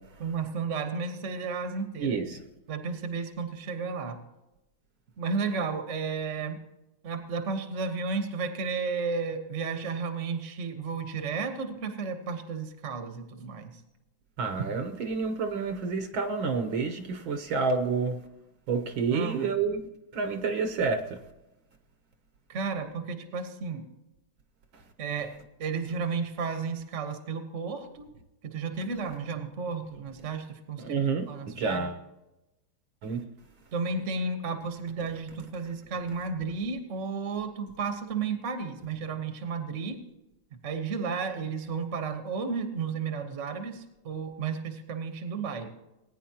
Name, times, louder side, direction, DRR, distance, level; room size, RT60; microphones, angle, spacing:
voice 1, 0.2-2.2 2.7-4.2 5.2-6.6 7.0-13.7 19.1-19.5 22.5-23.8 25.0-25.3 25.6-28.1 28.4-31.9 33.7-40.0 40.6-45.7, right 5 dB, 40° right, 1.4 m, -33 dB
voice 2, 2.0-2.4 14.4-18.2 18.7-19.8 20.1-21.2 30.8-32.0 33.0-33.2, right 4 dB, 65° right, 1.7 m, -29 dB
19.5 x 10.0 x 2.9 m
omnidirectional pair, 2.4 m